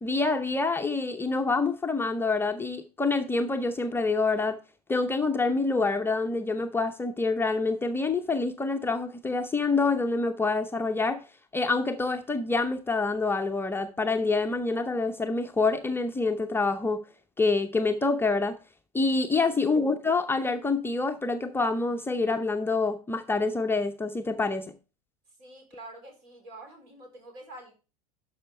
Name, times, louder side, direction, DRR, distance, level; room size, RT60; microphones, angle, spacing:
voice 1, 0.0-4.6 4.9-11.2 11.5-17.0 17.4-18.6 18.9-24.6, left 3 dB, 10° left, 0.7 m, -26 dB
voice 2, 25.4-27.7, right 2 dB, 55° right, 3.9 m, -47 dB
12.0 x 5.6 x 3.3 m
figure-of-eight pair, 75°, 19 cm